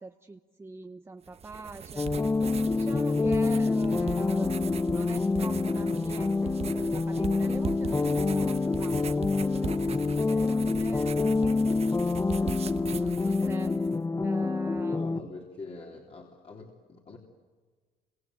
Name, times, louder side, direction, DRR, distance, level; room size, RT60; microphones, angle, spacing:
voice 1, 0.0-2.1 2.7-12.6 13.0-13.8 14.2-15.4, right 3 dB, 15° right, 7 dB, 0.8 m, -43 dB
sound 1, 1.3-14.0, right 7 dB, 40° right, 1.0 m, -40 dB
sound 2, 2.0-15.2, left 3 dB, 15° left, 0.8 m, -27 dB
voice 2, 14.9-17.2, left 3 dB, 35° left, 0 dB, 3.4 m, -44 dB
29.5 x 26.0 x 7.8 m, 1.5 s
cardioid pair, 110°, 17 cm